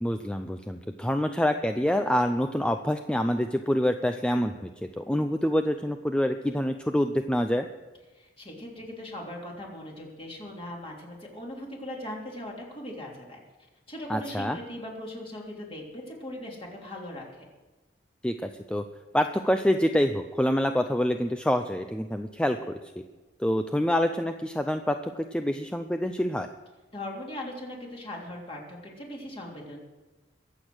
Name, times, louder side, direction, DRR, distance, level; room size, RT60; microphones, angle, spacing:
voice 1, 0.0-4.7 5.0-7.7 14.1-14.6 18.2-18.8 19.1-22.6 23.0-23.1 23.4-26.5, equal, 5° left, 7 dB, 0.5 m, -26 dB
voice 2, 8.2-13.4 13.9-17.5 26.9-29.8, left 1 dB, 35° left, -2 dB, 3.5 m, -39 dB
22.5 x 8.2 x 6.3 m, 1.2 s
head